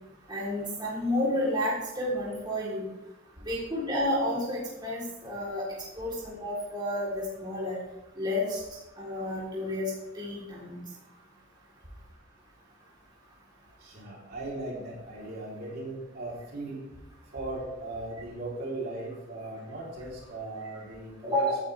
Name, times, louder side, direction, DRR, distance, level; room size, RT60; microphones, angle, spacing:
voice 1, 0.3-2.9 3.5-5.6 5.9-7.8 8.2-8.6 9.0-10.8 21.2-21.6, left 1 dB, 25° right, -6 dB, 3.9 m, -30 dB
voice 2, 13.8-16.8 17.3-21.5, right 2 dB, 55° right, -4 dB, 4.0 m, -38 dB
17.0 x 9.8 x 3.6 m, 0.95 s
head